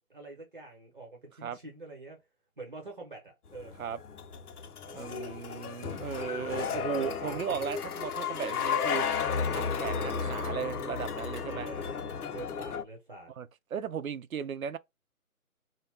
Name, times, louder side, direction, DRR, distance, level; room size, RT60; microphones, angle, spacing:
voice 1, 0.0-2.2 2.6-3.7 4.8-5.4 6.3-7.6 11.5-13.3, right 3 dB, 35° right, 0.8 m, -46 dB
sound 1, 3.5-12.8, left 6 dB, 90° left, 0.6 m, -33 dB
voice 2, 4.9-9.1 9.5-11.7 13.4-14.8, right 7 dB, 70° right, 0.6 m, -36 dB
2.2 x 2.1 x 3.3 m
figure-of-eight pair, 160°, 44 cm